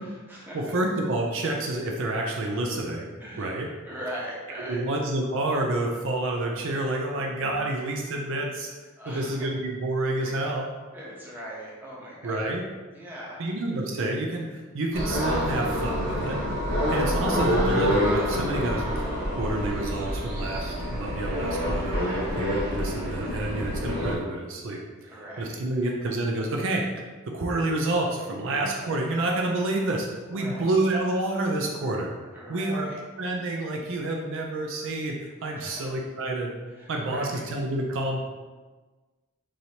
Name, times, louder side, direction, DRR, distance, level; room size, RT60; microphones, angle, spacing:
voice 1, 0.0-0.8 3.2-3.6 3.8-4.8 9.0-9.5 10.1-10.5 10.9-12.6 12.9-13.5 21.9-22.3 25.0-26.1 30.3-30.7 32.3-33.0 35.5-35.9 36.7-37.4, equal, 10° right, -6 dB, 0.8 m, -41 dB
voice 2, 0.5-3.1 3.4-3.7 4.7-8.7 9.1-10.7 12.2-12.6 13.4-16.4 16.9-19.1 19.4-22.0 22.4-25.1 25.4-26.8 27.3-32.1 32.5-32.9 33.2-36.5 36.9-38.2, right 2 dB, 60° right, 0 dB, 0.4 m, -28 dB
sound 1, 14.9-24.1, equal, 80° right, 1.3 m, -27 dB
4.7 x 2.7 x 2.8 m, 1.3 s
head